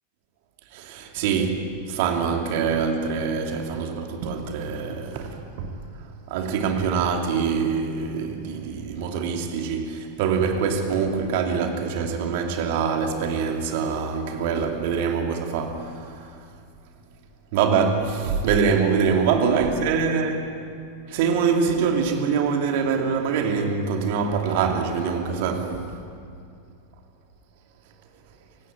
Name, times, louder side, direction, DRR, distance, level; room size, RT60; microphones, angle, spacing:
voice 1, 0.7-5.8 6.3-16.4 17.5-20.5 21.1-25.9, right 6 dB, 50° right, 2.8 m, -24 dB
29.0 x 17.5 x 8.9 m
figure-of-eight pair, 90°, 0 cm